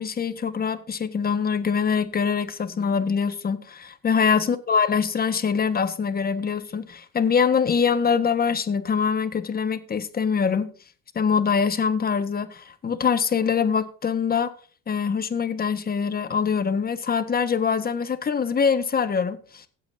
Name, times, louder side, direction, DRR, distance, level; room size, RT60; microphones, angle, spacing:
voice 1, 0.0-10.7 11.1-14.5 14.9-19.7, left 6 dB, 30° left, 1.4 m, -24 dB
16.0 x 8.4 x 2.7 m
supercardioid pair, 95°, 31 cm